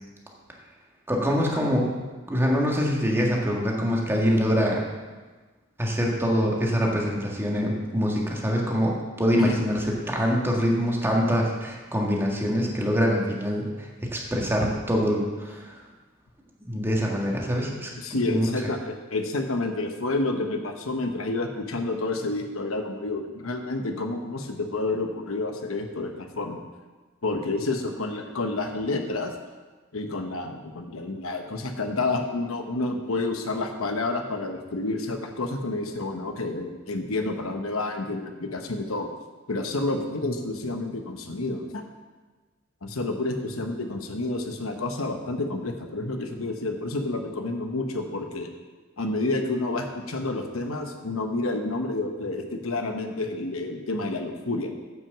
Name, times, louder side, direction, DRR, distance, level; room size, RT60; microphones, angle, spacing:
voice 1, 1.1-2.0 2.3-4.8 5.8-15.8 16.6-17.9 18.3-18.5, equal, 10° right, -2 dB, 1.7 m, -24 dB
voice 2, 18.0-26.6 27.2-29.3 29.9-39.1 39.5-41.8 42.8-48.5 49.0-54.7, left 2 dB, 85° left, 5 dB, 1.1 m, -29 dB
9.5 x 6.2 x 7.4 m, 1.3 s
head